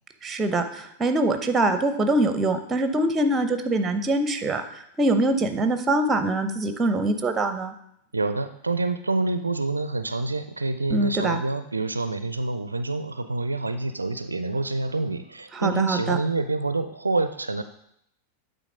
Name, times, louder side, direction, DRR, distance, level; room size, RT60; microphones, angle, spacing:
voice 1, 0.2-7.7 10.9-11.4 15.5-16.2, right 2 dB, 20° right, 8 dB, 0.8 m, -24 dB
voice 2, 8.1-17.6, right 3 dB, 80° right, 11 dB, 0.4 m, -27 dB
9.1 x 3.9 x 5.0 m, 0.74 s
figure-of-eight pair, 90°, 0 cm